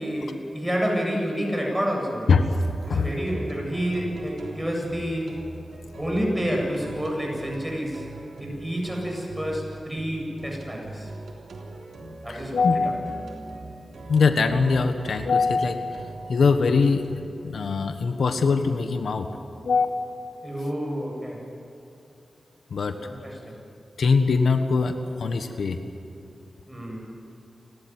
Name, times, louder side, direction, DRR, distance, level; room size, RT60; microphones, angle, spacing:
voice 1, 0.0-2.3 2.9-5.4 6.0-8.1 8.4-11.1 12.2-12.9 20.4-21.4 23.1-23.6 26.7-27.1, equal, 5° right, -1 dB, 7.9 m, -29 dB
sound 1, 2.5-17.2, right 2 dB, 85° right, 3.5 m, -41 dB
voice 2, 12.3-13.2 14.1-16.0 16.3-17.0 17.4-19.3 19.6-19.9 22.7-23.0 24.0-24.9 25.2-25.8, left 4 dB, 80° left, 7 dB, 1.4 m, -22 dB
30.0 x 13.0 x 9.6 m, 2.8 s
wide cardioid pair, 80°, 0 cm